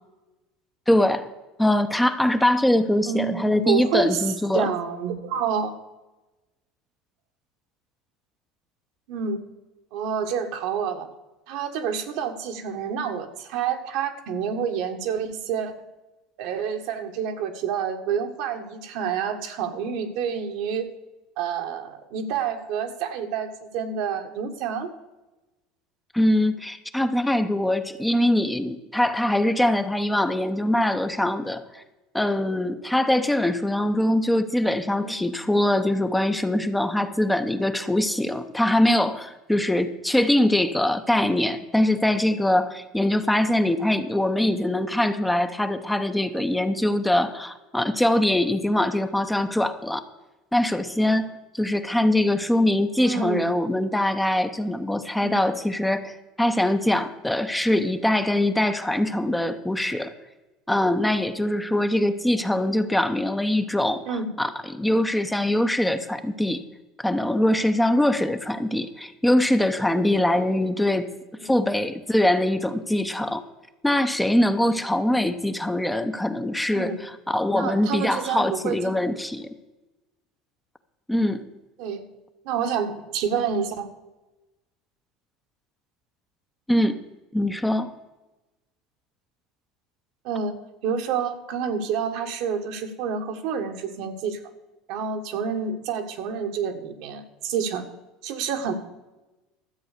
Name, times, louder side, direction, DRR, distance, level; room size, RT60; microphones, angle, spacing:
voice 1, 0.9-1.3 1.6-4.7 26.1-31.8 32.1-50.0 50.5-60.1 60.7-66.6 67.0-71.1 71.4-73.4 73.8-79.5 81.1-81.5 86.7-87.0 87.3-87.9, left 1 dB, 5° left, 8 dB, 0.8 m, -23 dB
voice 2, 3.1-4.2 4.5-5.7 9.1-9.4 9.9-11.1 11.5-15.7 16.4-20.9 21.4-24.9 35.0-35.1 53.0-53.5 55.2-55.3 64.1-64.3 71.4-71.5 76.7-77.0 77.5-78.8 81.8-82.0 82.4-83.9 87.6-87.8 90.2-90.5 90.8-94.4 94.9-97.8 98.2-98.7, right 7 dB, 70° right, 5 dB, 1.6 m, -28 dB
13.0 x 7.8 x 6.7 m, 1.1 s
supercardioid pair, 110°, 0 cm